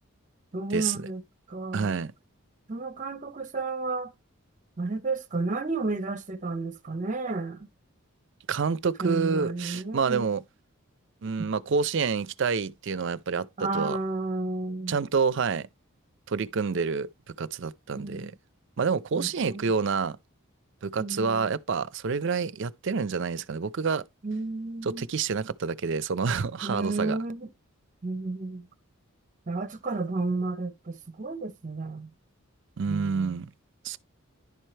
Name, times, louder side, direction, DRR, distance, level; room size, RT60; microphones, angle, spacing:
voice 1, 0.5-1.2 1.5-2.0 2.7-4.1 4.8-7.7 9.0-10.3 11.4-11.5 13.6-15.0 17.9-18.3 19.1-19.7 21.0-21.5 24.2-25.1 26.6-27.5 28.0-28.7 29.5-32.1 32.9-33.4, right 3 dB, 35° right, 0.8 m, -32 dB
voice 2, 1.7-2.1 8.5-10.4 11.2-14.0 14.9-15.7 16.3-17.1 17.4-18.3 18.8-20.2 20.8-24.0 24.8-27.2 32.8-33.5 33.8-34.0, right 5 dB, 60° right, 0.5 m, -28 dB
11.0 x 4.4 x 3.2 m
head